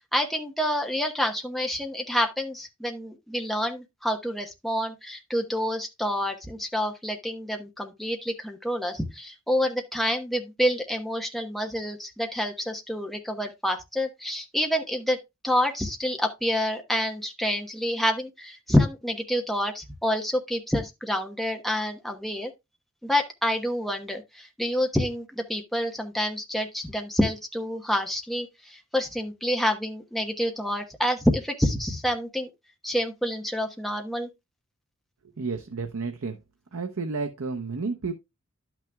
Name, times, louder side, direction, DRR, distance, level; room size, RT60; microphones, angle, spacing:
voice 1, 0.1-15.2 15.4-22.5 23.0-32.5 32.8-34.3, equal, ahead, 1.0 m, -28 dB
voice 2, 35.2-36.4 36.7-38.1, right 4 dB, 90° right, 0.8 m, -31 dB
11.5 x 6.0 x 2.3 m
head